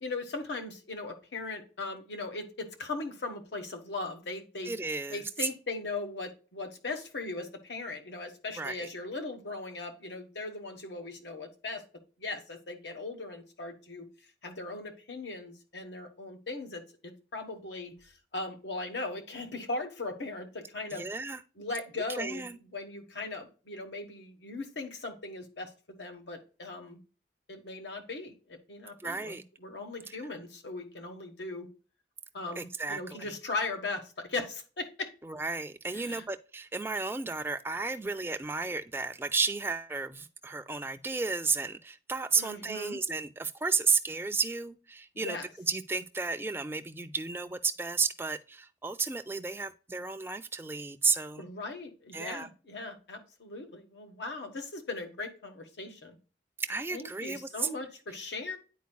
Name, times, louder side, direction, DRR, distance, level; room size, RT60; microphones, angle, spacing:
voice 1, 0.0-4.7 5.1-11.8 12.2-14.1 14.4-21.1 21.6-27.0 27.5-31.7 32.3-35.1 35.9-36.2 42.4-43.0 45.1-45.5 51.4-56.2 56.9-58.6, left 3 dB, 85° left, 1.2 m, -39 dB
voice 2, 4.6-5.5 8.6-8.9 20.9-21.4 22.1-22.6 29.0-29.4 32.6-33.3 35.2-51.5 52.1-52.5 56.6-57.7, right 4 dB, 15° right, 0.4 m, -33 dB
9.3 x 4.5 x 2.2 m
head